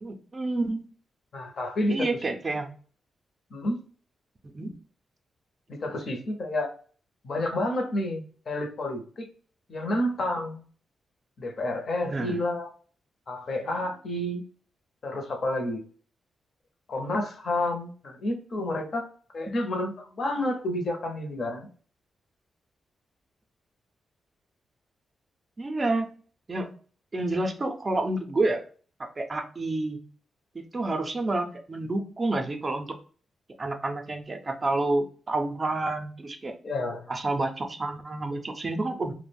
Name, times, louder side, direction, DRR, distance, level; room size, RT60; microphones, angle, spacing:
voice 1, 0.0-0.8 1.9-2.7 4.4-4.7 12.0-12.3 25.6-26.1 26.5-26.7 27.1-28.6 29.0-30.0 30.5-32.9 33.6-36.5 37.1-39.1, right 2 dB, 30° right, 5 dB, 0.4 m, -29 dB
voice 2, 1.3-2.4 3.5-3.8 5.7-6.7 7.2-9.3 9.7-10.6 11.4-12.7 13.3-14.4 15.0-15.8 16.9-19.0 19.3-21.7 36.6-37.1, left 1 dB, 55° left, 5 dB, 0.6 m, -30 dB
2.3 x 2.0 x 3.3 m, 0.43 s
wide cardioid pair, 120°, 0 cm